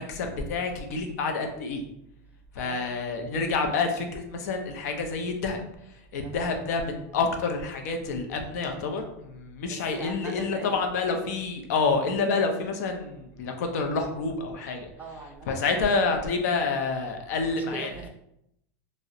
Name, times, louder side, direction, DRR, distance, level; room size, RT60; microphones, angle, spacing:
voice 1, 0.0-1.8 2.5-14.9 15.5-17.9, left 4 dB, 80° left, 5 dB, 0.4 m, -28 dB
voice 2, 2.6-2.9 6.2-6.5 9.7-10.8 15.0-16.3 17.4-18.1, right 3 dB, 20° right, 2 dB, 0.3 m, -42 dB
2.4 x 2.0 x 2.7 m, 0.79 s
supercardioid pair, 140°, 9 cm